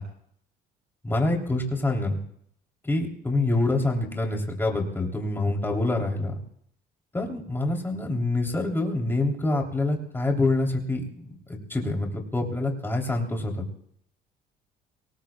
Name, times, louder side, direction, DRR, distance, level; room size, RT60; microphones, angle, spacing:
voice 1, 1.0-2.2 2.8-6.3 7.1-13.5, left 2 dB, 15° left, 0 dB, 3.3 m, -26 dB
28.0 x 19.5 x 2.4 m, 0.68 s
cardioid pair, 110°, 17 cm